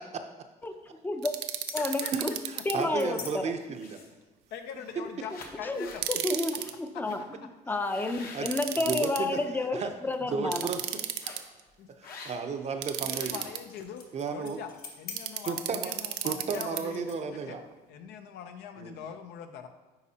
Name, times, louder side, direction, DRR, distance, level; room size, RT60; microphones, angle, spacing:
voice 1, 1.0-1.3 1.7-2.3 2.7-3.4 5.6-7.2 7.7-10.7, left 2 dB, 10° left, 7 dB, 0.5 m, -30 dB
sound 1, 1.2-2.7 5.9-6.7 8.5-9.2 10.5-11.6 12.8-13.6 15.2-16.8, right 12 dB, 90° right, 0.5 m, -34 dB
sound 2, 1.5-3.3 3.8-4.2 4.8-5.0 5.3-6.1 6.5-6.7 7.0-7.2 7.8-9.4 9.9-10.2 11.2-11.5 12.0-12.6 12.9-17.4, left 5 dB, 60° left, 1.0 m, -46 dB
voice 2, 1.8-2.1 3.0-3.2 4.5-6.0 11.8-11.9 13.0-14.0 14.3-17.6 17.9-19.7, left 8 dB, 80° left, 7 dB, 0.7 m, -42 dB
voice 3, 2.7-4.0 6.3-6.4 8.3-8.6 8.8-9.4 9.7-9.9 10.2-10.8 12.0-13.4 14.1-14.6 15.4-16.0 16.2-17.6 18.8-18.9, right 5 dB, 40° right, 7 dB, 0.6 m, -33 dB
9.6 x 4.2 x 2.8 m, 1.2 s
cardioid pair, 110°, 17 cm